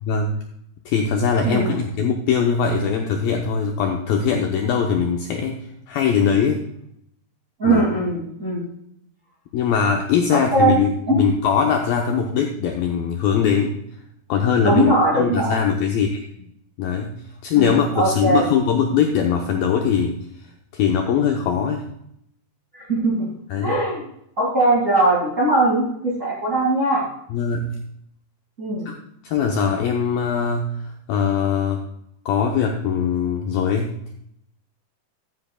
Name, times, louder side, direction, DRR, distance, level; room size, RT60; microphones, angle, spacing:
voice 1, 0.0-0.4 0.9-6.6 7.6-7.8 9.5-13.8 14.3-16.2 16.8-17.1 17.4-20.2 20.7-21.9 23.5-23.8 27.3-27.7 28.9-29.0 29.2-30.7 31.1-31.8 32.3-34.1, left 6 dB, 80° left, 2 dB, 2.1 m, -21 dB
voice 2, 1.4-1.8 7.6-8.7 10.3-10.8 11.1-11.2 14.6-15.5 17.5-18.4 22.7-23.3 23.6-24.0 24.4-27.1 28.6-28.9, right 2 dB, 30° right, -4 dB, 1.4 m, -20 dB
14.0 x 9.8 x 2.3 m, 0.73 s
omnidirectional pair, 5.1 m